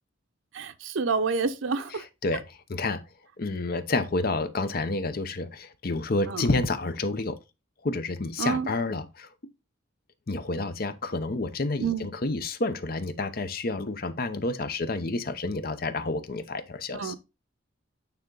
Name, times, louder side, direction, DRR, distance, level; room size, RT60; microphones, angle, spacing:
voice 1, 0.5-2.0 6.3-6.4 8.4-8.7 11.8-12.1 16.9-17.1, right 5 dB, 85° right, 0.6 m, -28 dB
voice 2, 1.9-3.0 3.4-7.4 7.8-9.3 10.3-17.1, left 2 dB, 50° left, 0.7 m, -29 dB
9.1 x 3.5 x 3.8 m
head